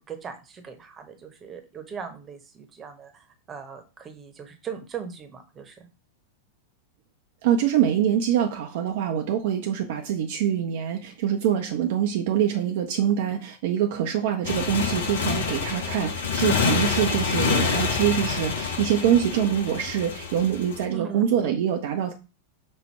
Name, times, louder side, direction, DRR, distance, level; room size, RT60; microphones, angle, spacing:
voice 1, 0.0-5.9 13.0-13.1 16.7-16.8 20.9-21.5, right 7 dB, 25° right, 5 dB, 0.9 m, -39 dB
voice 2, 7.4-22.1, right 9 dB, 55° right, 4 dB, 0.5 m, -24 dB
Motorcycle, 14.4-20.8, left 6 dB, 60° left, 0.7 m, -27 dB
5.3 x 2.2 x 4.3 m, 0.31 s
figure-of-eight pair, 90°, 0 cm